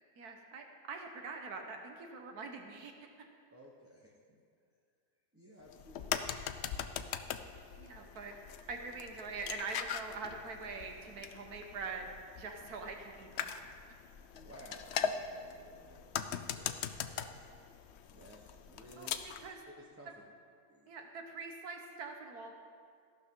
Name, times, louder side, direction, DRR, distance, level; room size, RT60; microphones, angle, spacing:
voice 1, 0.2-2.9 7.8-8.3 8.7-12.1 12.4-13.6 13.9-14.0 19.0-19.1 19.4-19.6 20.9-22.5, right 4 dB, 65° right, 4 dB, 1.6 m, -44 dB
voice 2, 3.5-4.4 5.3-6.4 14.3-17.5 18.1-19.2 19.8-20.1 20.7-20.9, right 1 dB, 10° right, -4 dB, 0.9 m, -56 dB
sound 1, 5.7-19.5, left 8 dB, 80° left, 0.6 m, -41 dB
14.5 x 12.0 x 3.8 m, 2.3 s
omnidirectional pair, 1.8 m